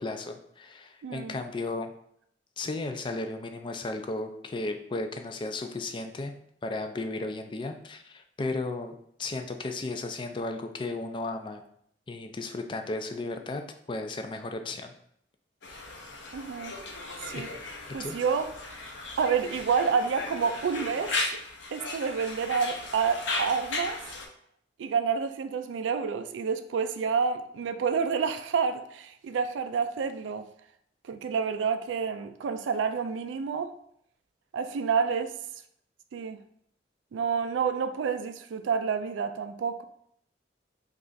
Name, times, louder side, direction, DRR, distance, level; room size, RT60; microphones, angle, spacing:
voice 1, 0.0-1.9 2.6-6.3 6.6-11.6 12.1-13.6 13.9-14.9 18.0-18.2, left 2 dB, 25° left, 0.3 m, -34 dB
voice 2, 1.0-1.4 16.3-16.7 17.2-17.5 17.9-18.5 19.2-21.4 21.7-24.0 24.8-30.5 31.1-33.7 34.5-35.3 36.1-36.4 37.1-39.8, right 6 dB, 90° right, 0.3 m, -29 dB
Conversation, 15.6-24.3, left 2 dB, 85° left, 0.7 m, -36 dB
3.2 x 2.4 x 3.8 m
head